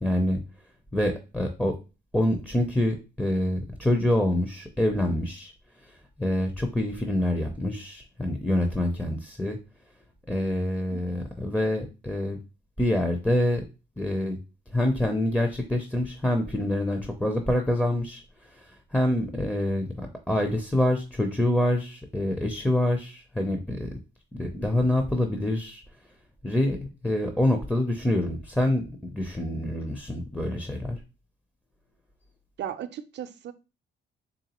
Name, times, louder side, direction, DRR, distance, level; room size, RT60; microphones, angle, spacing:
voice 1, 0.0-0.4 0.9-1.7 2.1-5.5 5.8-9.6 10.3-12.4 12.8-13.6 14.0-14.4 14.7-23.9 24.4-25.8 26.4-26.8 27.0-28.8 29.1-31.0, left 1 dB, 5° left, 3 dB, 0.5 m, -26 dB
voice 2, 10.9-11.2 32.6-33.5, right 10 dB, 65° right, 11 dB, 0.5 m, -36 dB
3.9 x 3.3 x 2.9 m, 0.30 s
cardioid pair, 90°, 20 cm